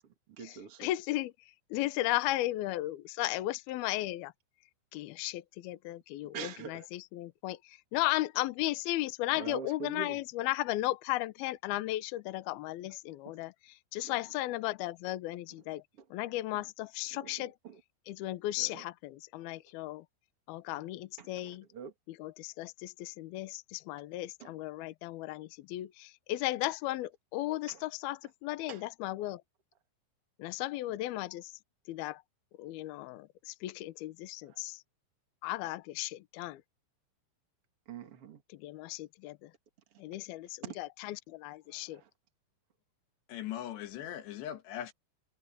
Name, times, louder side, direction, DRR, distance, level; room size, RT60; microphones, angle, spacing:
voice 1, 0.3-0.9 6.3-6.9 9.3-10.2 14.0-14.1 16.0-16.1 17.1-17.8 18.6-18.8 21.2-21.9 24.4-24.5 27.7-27.8 28.7-28.8 34.4-34.6 37.8-38.4 40.6-40.8 41.7-42.1, right 7 dB, 55° right, 1.6 m, -45 dB
voice 2, 0.8-1.3 1.7-4.3 4.9-13.5 13.9-15.8 16.1-17.5 18.1-20.0 20.5-21.6 22.2-29.4 30.4-31.5 31.9-32.2 32.6-34.8 35.4-36.6 38.5-39.5 40.0-42.0, left 17 dB, 90° left, 2.1 m, -35 dB
voice 3, 43.3-44.9, left 11 dB, 65° left, 3.5 m, -39 dB
omnidirectional pair, 5.9 m